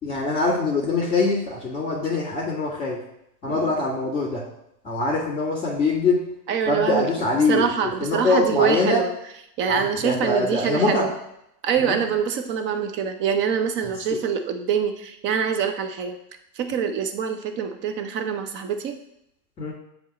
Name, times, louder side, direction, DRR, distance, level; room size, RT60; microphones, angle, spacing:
voice 1, 0.0-3.0 3.4-4.4 4.8-6.2 6.7-9.0 9.7-11.1 11.8-12.0 13.8-14.2 19.6-19.7, left 3 dB, 15° left, -9 dB, 2.0 m, -23 dB
voice 2, 6.5-7.1 7.5-9.1 9.6-11.1 11.6-16.1 16.6-18.9, right 7 dB, 25° right, 7 dB, 0.5 m, -25 dB
7.3 x 3.1 x 4.2 m, 0.79 s
hypercardioid pair, 120°, 49 cm